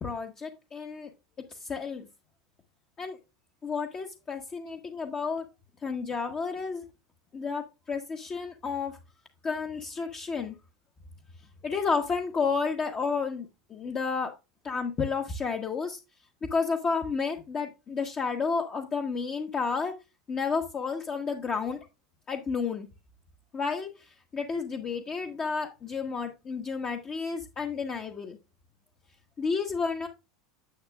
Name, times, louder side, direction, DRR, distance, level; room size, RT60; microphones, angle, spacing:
voice 1, 0.0-1.1 1.5-2.1 3.0-3.2 3.6-5.4 5.8-6.8 7.3-9.0 9.4-10.5 11.6-14.3 14.6-16.0 16.5-19.9 20.3-21.8 22.3-22.9 23.5-28.4 29.4-30.1, left 5 dB, 30° left, 1.2 m, -31 dB
10.0 x 8.2 x 2.4 m
figure-of-eight pair, 80°, 3 cm